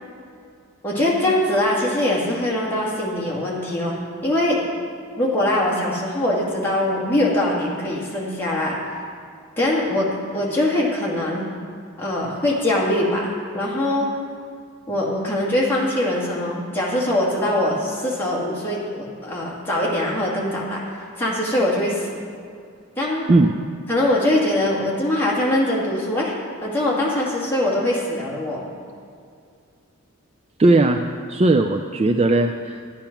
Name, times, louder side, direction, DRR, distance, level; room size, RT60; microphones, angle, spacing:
voice 1, 0.8-4.0 4.2-4.7 5.2-8.8 9.6-10.0 10.3-11.4 12.0-14.1 14.9-20.8 21.2-22.2 23.0-23.3 23.9-26.3 26.6-28.7, left 1 dB, 10° left, -5 dB, 2.0 m, -22 dB
voice 2, 30.6-31.0 31.3-32.8, right 2 dB, 30° right, 6 dB, 0.3 m, -17 dB
11.5 x 8.9 x 5.9 m, 2.3 s
head